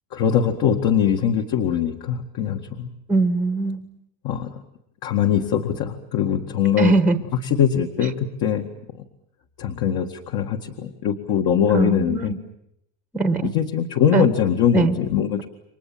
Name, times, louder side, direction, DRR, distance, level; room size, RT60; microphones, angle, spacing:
voice 1, 0.1-2.9 4.2-4.5 5.0-6.9 7.4-8.7 9.6-12.3 13.5-15.5, left 8 dB, 50° left, 3 dB, 2.1 m, -22 dB
voice 2, 3.1-3.9 6.8-7.2 11.7-12.4 13.1-13.5 14.1-14.3 14.7-14.9, right 3 dB, 5° right, 10 dB, 1.1 m, -20 dB
29.5 x 24.5 x 7.6 m, 0.80 s
cardioid pair, 165°, 50 cm